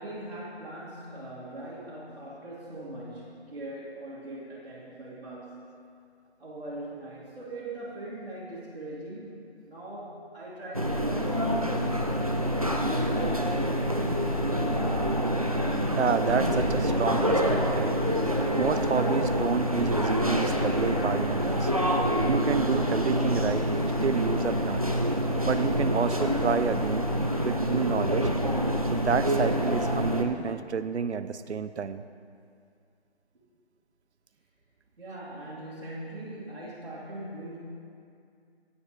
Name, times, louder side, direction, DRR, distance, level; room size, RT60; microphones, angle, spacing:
voice 1, 0.0-5.6 6.4-9.4 9.6-12.2 12.8-13.7 33.3-33.4 35.0-37.6, right 1 dB, 65° right, -10 dB, 2.8 m, -40 dB
sound 1, 10.7-30.2, equal, 35° right, 0.5 m, -26 dB
voice 2, 16.0-17.9 18.6-21.7 22.3-23.7 24.0-24.9 25.4-27.1 27.4-28.3 28.9-32.0, right 6 dB, 80° right, 13 dB, 0.6 m, -29 dB
16.5 x 7.8 x 3.2 m, 2.3 s
figure-of-eight pair, 180°, 34 cm